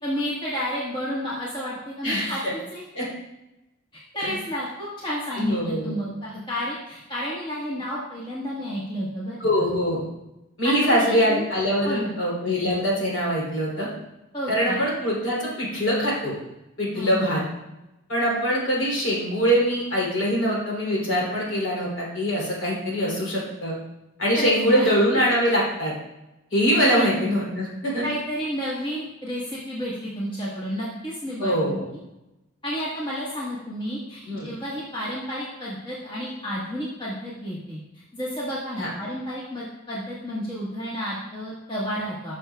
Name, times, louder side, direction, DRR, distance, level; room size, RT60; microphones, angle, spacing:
voice 1, 0.0-2.8 4.1-9.4 10.6-11.4 11.8-12.1 14.3-14.8 16.9-17.3 24.3-24.9 26.8-27.0 28.0-31.8 32.6-42.3, equal, 20° left, -7 dB, 1.4 m, -31 dB
voice 2, 2.0-2.5 2.9-3.1 4.2-4.4 5.4-6.0 9.4-10.0 10.6-13.9 14.5-16.3 16.8-17.4 18.1-23.7 24.2-25.9 26.5-28.0 31.4-31.9 34.3-34.5 38.8-38.9, equal, 65° left, -4 dB, 3.0 m, -23 dB
12.0 x 6.2 x 2.3 m, 0.93 s
head